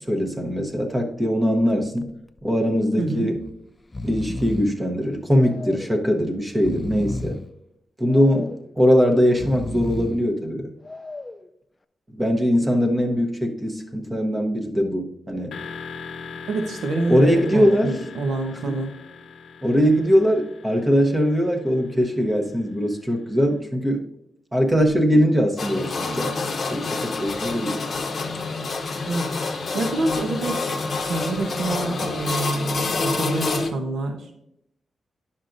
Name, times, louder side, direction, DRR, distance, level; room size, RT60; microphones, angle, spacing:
voice 1, 0.1-2.1 2.4-3.4 4.0-7.4 8.0-10.7 12.1-15.6 17.1-17.9 18.6-18.8 19.6-24.1 24.5-26.3 26.7-27.8, equal, 15° right, 2 dB, 1.0 m, -21 dB
Breathing, 1.7-2.0 2.4-2.5 3.3-3.5 3.8-4.8 5.4-6.0 6.5-7.5 8.1-8.7 9.2-10.3 10.8-11.5, left 2 dB, 20° left, 0.3 m, -33 dB
voice 2, 3.0-3.3 16.4-18.9 29.0-30.6 31.0-34.3, right 2 dB, 85° right, 3 dB, 1.1 m, -27 dB
sound 1, 15.5-23.3, left 5 dB, 90° left, 0.7 m, -41 dB
sound 2, 25.6-33.7, left 3 dB, 45° left, 0.8 m, -27 dB
10.5 x 5.7 x 2.6 m, 0.77 s
wide cardioid pair, 145°, 0 cm